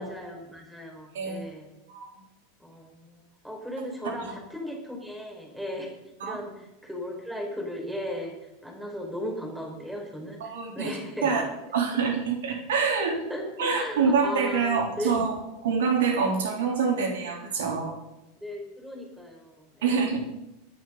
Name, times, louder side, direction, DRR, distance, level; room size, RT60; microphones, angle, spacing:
voice 1, 0.0-1.7 2.6-5.9 6.2-8.4 8.6-11.5 13.3-15.2 18.4-19.9, equal, ahead, 0 dB, 5.5 m, -36 dB
voice 2, 4.0-4.4 6.2-6.4 10.4-11.4 11.7-13.2 13.6-15.4 15.6-18.0 19.8-20.2, right 5 dB, 65° right, 3 dB, 3.7 m, -26 dB
25.0 x 10.5 x 4.1 m, 0.93 s
figure-of-eight pair, 85°, 0 cm